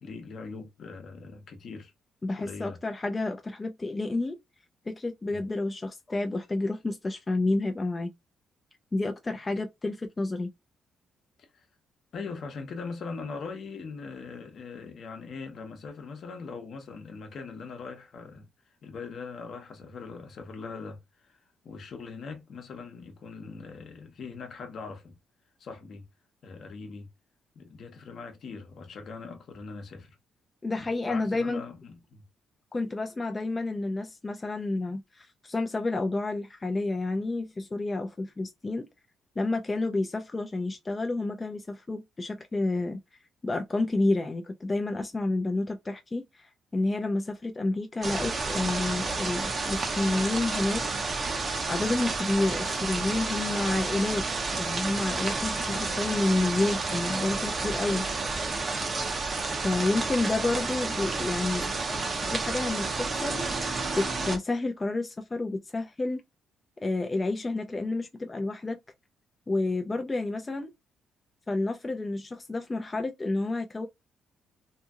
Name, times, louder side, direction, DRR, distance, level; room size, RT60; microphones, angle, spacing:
voice 1, 0.0-1.9 2.3-2.8 5.3-5.4 11.4-11.6 12.1-18.5 18.8-25.1 25.6-26.1 26.4-27.1 27.5-30.2 30.8-32.2, left 4 dB, 60° left, 0.8 m, -41 dB
voice 2, 2.2-4.4 4.9-8.1 8.9-10.5 30.6-31.6 32.7-38.9 39.4-43.0 43.4-50.8 51.7-58.1 59.6-63.5 63.9-66.2 66.8-68.8 69.5-70.7 71.5-73.9, left 2 dB, 25° left, 0.4 m, -30 dB
sound 1, 48.0-64.4, right 3 dB, 40° right, 0.7 m, -30 dB
2.8 x 2.6 x 2.3 m
cardioid pair, 90°, 0 cm